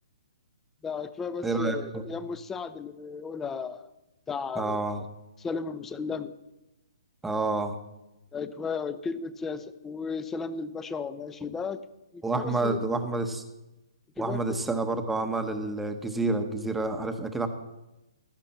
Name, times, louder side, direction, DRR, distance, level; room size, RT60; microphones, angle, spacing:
voice 1, 0.8-3.9 4.3-4.9 5.4-6.3 8.3-11.8 12.1-12.8 14.2-14.7, left 5 dB, 10° left, 14 dB, 0.6 m, -34 dB
voice 2, 1.4-2.0 4.6-5.0 7.2-7.8 12.2-13.4 14.2-17.5, right 3 dB, 5° right, 6 dB, 1.0 m, -29 dB
16.0 x 11.5 x 4.3 m, 0.98 s
hypercardioid pair, 150°, 3 cm